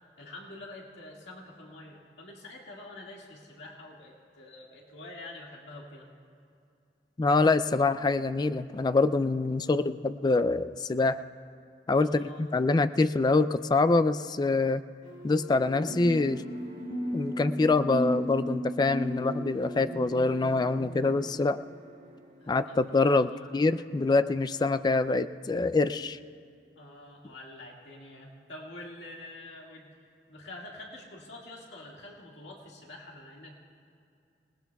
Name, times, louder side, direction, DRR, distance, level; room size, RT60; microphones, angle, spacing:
voice 1, 0.2-6.1 9.6-9.9 12.0-12.4 22.4-23.5 26.8-29.9 30.3-33.5, left 2 dB, 85° left, -2 dB, 2.0 m, -46 dB
voice 2, 7.2-11.2 11.9-14.8 15.2-16.4 17.1-21.6 22.5-26.2, left 3 dB, 25° left, 12 dB, 0.3 m, -25 dB
sound 1, 15.0-23.0, equal, 45° right, 2.2 m, -48 dB
sound 2, 15.8-21.5, equal, 55° left, 2.0 m, -35 dB
26.5 x 18.5 x 2.3 m, 2.5 s
head